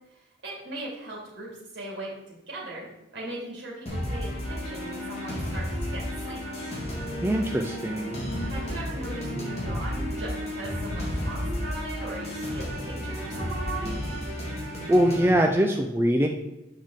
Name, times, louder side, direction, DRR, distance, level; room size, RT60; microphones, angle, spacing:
voice 1, 0.4-2.9 3.1-6.6 8.4-14.0, right 2 dB, 60° right, -3 dB, 2.5 m, -39 dB
sound 1, 3.9-15.3, equal, 35° left, 1.9 m, -32 dB
voice 2, 7.2-8.2 14.9-16.3, equal, 10° right, 2 dB, 0.4 m, -22 dB
7.2 x 5.1 x 3.7 m, 1.0 s
head